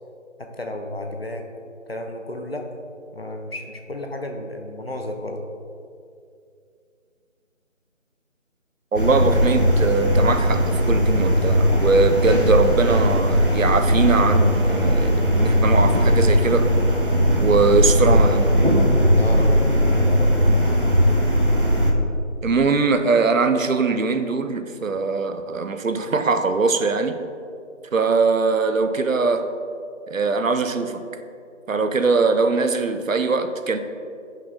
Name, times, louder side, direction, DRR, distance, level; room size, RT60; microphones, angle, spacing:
voice 1, 0.4-2.7 3.1-5.4 19.1-20.3, left 1 dB, 50° left, 3 dB, 0.8 m, -33 dB
sound 1, 8.9-21.9, equal, 45° right, 0.7 m, -18 dB
voice 2, 8.9-16.7 17.4-18.6 22.4-27.2 27.9-29.5 30.1-31.0 31.7-33.8, right 4 dB, 85° right, 9 dB, 0.8 m, -21 dB
8.2 x 5.7 x 3.6 m, 2.4 s
figure-of-eight pair, 180°, 38 cm